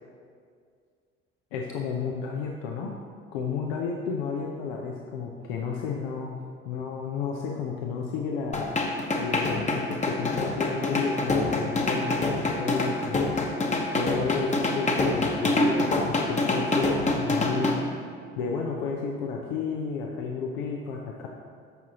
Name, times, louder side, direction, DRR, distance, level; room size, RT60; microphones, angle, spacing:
voice 1, 1.5-3.0 3.3-6.4 6.6-8.6 9.2-13.3 14.0-17.8 18.4-21.3, left 5 dB, 70° left, 0 dB, 0.8 m, -32 dB
sound 1, 8.5-17.8, left 2 dB, 20° left, 1.1 m, -26 dB
13.5 x 6.1 x 3.0 m, 2.1 s
figure-of-eight pair, 55°, 32 cm